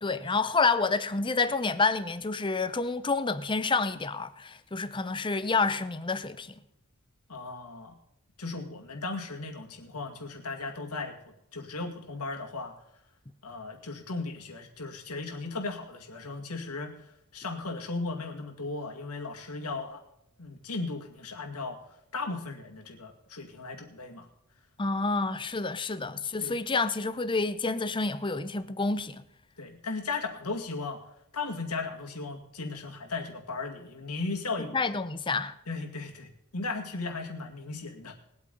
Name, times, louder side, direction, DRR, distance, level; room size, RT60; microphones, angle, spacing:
voice 1, 0.0-6.5 24.8-29.2 34.7-35.5, left 3 dB, 20° left, 0.6 m, -28 dB
voice 2, 7.3-7.9 8.4-11.2 11.5-12.7 13.4-16.9 17.3-20.0 20.4-21.8 22.1-24.3 26.1-26.6 29.6-31.0 31.3-34.8 35.7-38.1, left 3 dB, 90° left, 2.2 m, -36 dB
20.5 x 8.3 x 4.0 m
head